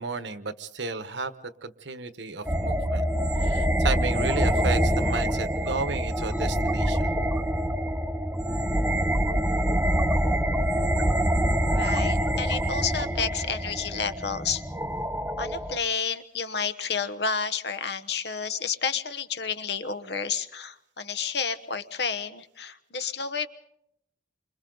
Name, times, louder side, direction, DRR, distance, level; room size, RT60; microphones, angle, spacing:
voice 1, 0.0-1.3 1.6-3.0 3.4-7.2, right 4 dB, 70° right, 11 dB, 1.2 m, -33 dB
sound 1, 2.5-15.8, equal, 10° right, 0.8 m, -25 dB
voice 2, 11.7-14.6 15.4-23.5, left 6 dB, 55° left, 11 dB, 1.2 m, -30 dB
29.5 x 26.0 x 4.0 m, 0.78 s
head